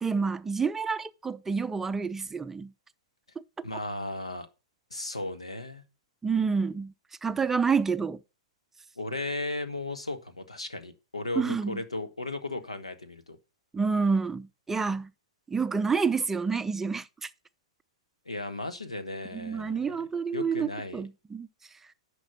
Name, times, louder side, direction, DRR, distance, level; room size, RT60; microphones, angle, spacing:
voice 1, 0.0-2.7 6.2-6.9 7.2-8.2 11.4-11.8 13.7-15.1 15.5-17.3 19.3-21.5, right 5 dB, 10° right, 0.4 m, -28 dB
voice 2, 3.6-4.5 4.9-5.8 9.0-13.4 18.2-20.0 20.3-21.0, left 2 dB, 85° left, 1.3 m, -35 dB
10.5 x 5.2 x 6.0 m
figure-of-eight pair, 110°, 3 cm